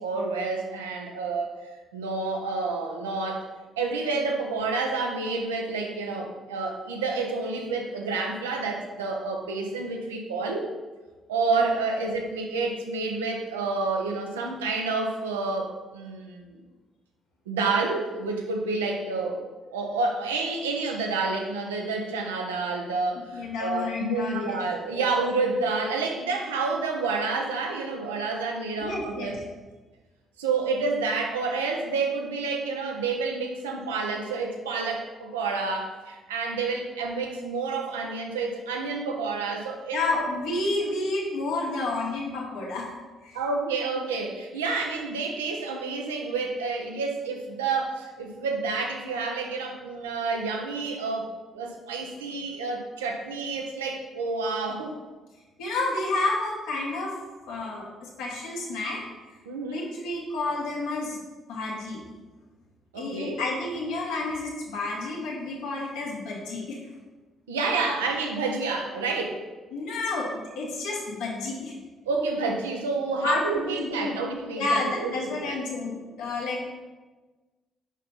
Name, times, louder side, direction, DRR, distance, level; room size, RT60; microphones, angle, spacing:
voice 1, 0.0-1.5 1.9-3.5 3.8-10.7 11.3-16.6 17.5-19.4 19.7-29.4 30.4-40.3 43.3-55.0 59.5-59.8 62.9-63.4 67.5-69.4 72.1-75.6, right 4 dB, 90° right, 2 dB, 0.7 m, -29 dB
voice 2, 23.1-24.6 24.9-25.0 28.8-29.4 39.9-42.9 43.2-43.4 55.6-57.1 57.5-59.0 59.3-59.4 59.7-61.2 61.5-62.0 62.9-66.8 69.7-71.7 73.2-74.1 74.6-76.7, left 2 dB, 75° left, -3 dB, 1.6 m, -30 dB
6.3 x 5.5 x 4.0 m, 1.3 s
hypercardioid pair, 45°, 0 cm